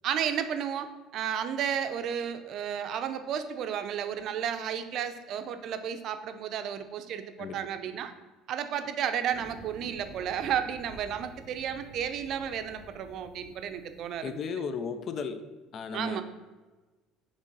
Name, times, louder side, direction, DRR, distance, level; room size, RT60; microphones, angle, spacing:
voice 1, 0.0-8.1 8.5-14.4 15.9-16.2, right 8 dB, 50° right, 9 dB, 0.5 m, -33 dB
sound 1, 9.3-14.3, right 1 dB, 5° left, 1.3 m, -50 dB
voice 2, 14.2-15.4 15.7-16.2, left 5 dB, 40° left, 10 dB, 0.5 m, -34 dB
6.3 x 3.2 x 5.3 m, 1.2 s
cardioid pair, 140°, 0 cm